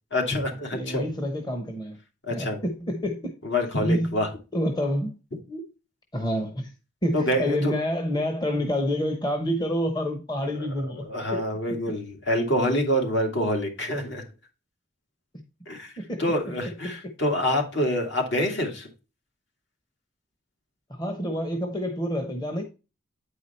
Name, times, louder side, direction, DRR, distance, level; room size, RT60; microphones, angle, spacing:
voice 1, 0.1-1.0 2.3-2.6 3.4-4.3 7.1-7.7 10.6-14.2 15.7-15.9 16.2-18.9, equal, 65° left, 2.5 m, -26 dB
voice 2, 0.7-2.0 2.3-3.3 3.8-4.3 4.5-5.1 5.5-5.6 6.1-6.7 7.0-11.0 11.3-11.4 16.0-16.2 16.8-17.0 20.9-22.6, equal, 20° left, 1.0 m, -28 dB
9.2 x 4.8 x 4.3 m
head